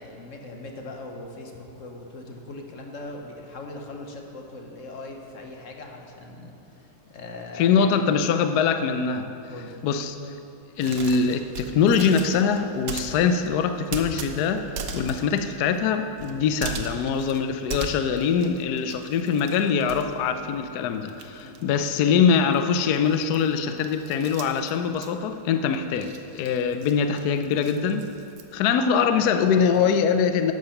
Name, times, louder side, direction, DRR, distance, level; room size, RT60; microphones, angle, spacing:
voice 1, 0.0-7.9 9.5-9.9 21.4-21.7 29.1-29.9, left 2 dB, 50° left, 2 dB, 1.1 m, -40 dB
voice 2, 7.6-9.3 9.8-10.2 10.8-28.1 28.5-30.5, left 6 dB, 70° left, 8 dB, 0.9 m, -23 dB
sound 1, 10.8-20.8 21.0-28.5, right 4 dB, 65° right, 1.3 m, -39 dB
12.0 x 7.9 x 5.8 m, 2.7 s
omnidirectional pair, 2.3 m